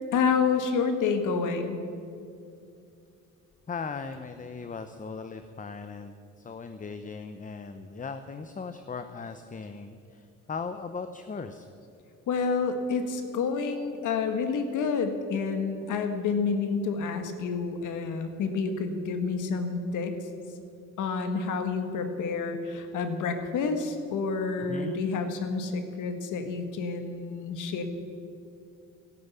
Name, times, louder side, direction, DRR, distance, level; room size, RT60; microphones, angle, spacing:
voice 1, 0.1-1.8 12.3-20.1 21.0-27.8, left 5 dB, 85° left, 7 dB, 1.7 m, -29 dB
voice 2, 3.7-11.7 24.7-25.0, left 5 dB, 25° left, 9 dB, 0.8 m, -38 dB
13.5 x 11.5 x 8.4 m, 2.5 s
cardioid pair, 90°, 30 cm